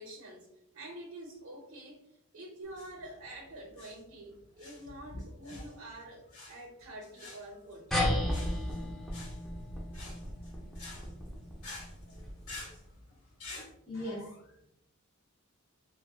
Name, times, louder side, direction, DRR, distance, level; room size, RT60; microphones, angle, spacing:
voice 1, 0.0-2.0 2.3-8.1, right 1 dB, 75° right, -2 dB, 0.6 m, -47 dB
sound 1, 2.6-13.7, left 2 dB, 80° left, 0.9 m, -49 dB
sound 2, 7.9-12.8, left 1 dB, ahead, 0.4 m, -34 dB
voice 2, 13.8-14.7, left 1 dB, 45° left, -5 dB, 1.3 m, -40 dB
3.7 x 2.1 x 2.2 m, 0.80 s
head